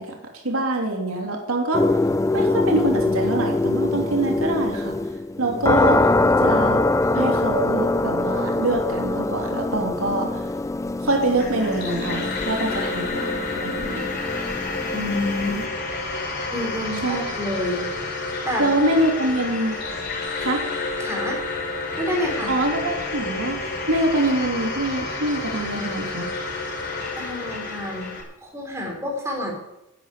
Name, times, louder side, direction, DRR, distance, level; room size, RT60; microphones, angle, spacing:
voice 1, 0.0-1.9 2.3-5.0 5.4-6.1 6.4-6.8 7.1-10.4 11.0-14.2 17.0-17.2 18.6-19.8 20.4-20.6 22.5-26.3, right 2 dB, 85° right, 1 dB, 3.0 m, -25 dB
sound 1, 1.7-15.7, left 2 dB, 15° left, 0.4 m, -23 dB
sound 2, 11.2-28.2, left 3 dB, 50° left, 5.4 m, -30 dB
voice 2, 14.9-15.7 16.5-17.9 18.2-18.7 21.0-21.4 22.0-22.6 27.2-28.1 28.4-29.5, left 1 dB, 15° right, 0 dB, 4.3 m, -28 dB
12.0 x 10.0 x 8.9 m, 0.91 s
head